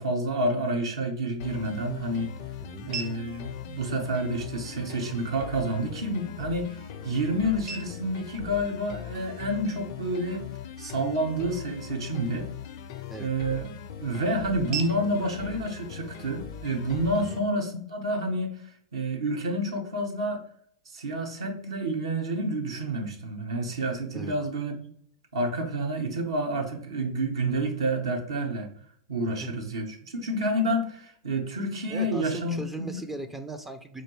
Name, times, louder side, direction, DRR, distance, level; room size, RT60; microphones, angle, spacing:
voice 1, 0.0-2.4 2.8-10.4 10.8-12.5 13.2-13.7 14.0-18.6 18.9-20.4 20.9-24.9 25.3-28.7 29.1-33.0, right 1 dB, 75° right, 2 dB, 0.9 m, -29 dB
sound 1, 1.2-17.2, right 6 dB, 35° right, 0.7 m, -46 dB
sound 2, 1.4-17.4, left 8 dB, 50° left, 0.4 m, -41 dB
voice 2, 31.9-34.0, right 2 dB, 10° right, 7 dB, 0.4 m, -38 dB
4.2 x 2.6 x 3.0 m, 0.64 s
figure-of-eight pair, 95°, 3 cm